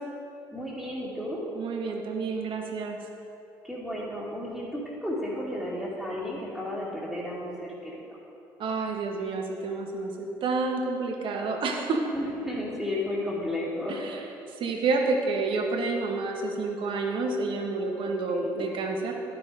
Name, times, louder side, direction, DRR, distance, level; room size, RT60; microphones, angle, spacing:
voice 1, 0.5-1.4 3.6-8.0 12.1-14.0 18.1-18.7, left 1 dB, ahead, -9 dB, 2.2 m, -33 dB
voice 2, 1.6-3.0 8.6-12.0 14.6-19.1, right 3 dB, 60° right, 2 dB, 1.3 m, -29 dB
11.5 x 5.9 x 5.0 m, 2.8 s
hypercardioid pair, 55°, 10 cm